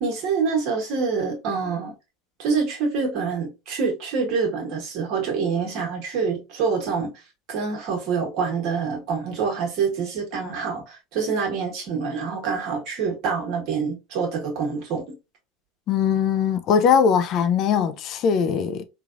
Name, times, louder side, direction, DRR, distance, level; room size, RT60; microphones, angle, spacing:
voice 1, 0.0-1.9 2.4-7.2 7.5-15.0, right 5 dB, 55° right, 1.3 m, -26 dB
voice 2, 15.9-18.8, left 7 dB, 50° left, 0.4 m, -20 dB
3.2 x 2.3 x 2.4 m
hypercardioid pair, 85°, 0 cm